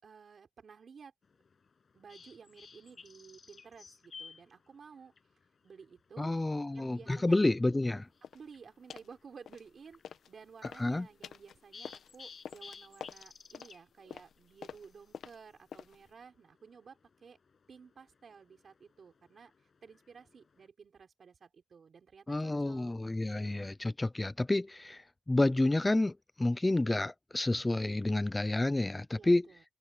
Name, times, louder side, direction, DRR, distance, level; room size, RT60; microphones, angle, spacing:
voice 1, 0.0-1.1 1.9-5.1 5.6-6.3 6.7-7.3 8.3-17.4 17.7-19.5 19.8-22.9 29.1-29.6, right 6 dB, 40° right, 5.3 m, -54 dB
sound 1, 1.2-20.7, left 5 dB, 35° left, 6.8 m, -58 dB
voice 2, 6.2-8.1 10.6-11.1 22.3-29.4, left 2 dB, 10° left, 0.5 m, -30 dB
sound 2, 8.2-8.5 8.9-9.1 9.5-10.3 10.6-16.1, left 8 dB, 65° left, 1.0 m, -48 dB
wide cardioid pair, 180°, 0 cm